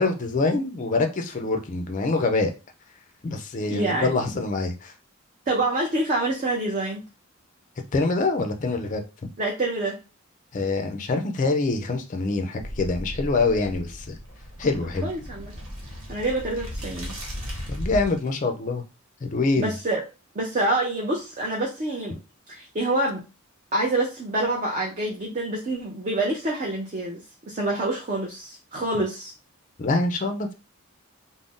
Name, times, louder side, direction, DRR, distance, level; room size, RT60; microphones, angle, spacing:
voice 1, 0.0-2.5 3.2-4.9 7.9-9.0 10.5-14.2 14.6-15.1 17.7-18.8 19.2-19.7 29.8-30.5, left 3 dB, 35° left, 6 dB, 0.4 m, -25 dB
voice 2, 3.7-4.1 5.5-7.0 9.4-10.0 15.0-15.5 16.1-17.1 19.6-20.0 20.3-22.2 22.5-23.2 23.7-29.3, right 2 dB, 35° right, -2 dB, 0.5 m, -26 dB
sound 1, 12.6-18.3, equal, 75° right, 1.1 m, -36 dB
2.5 x 2.0 x 3.5 m, 0.29 s
head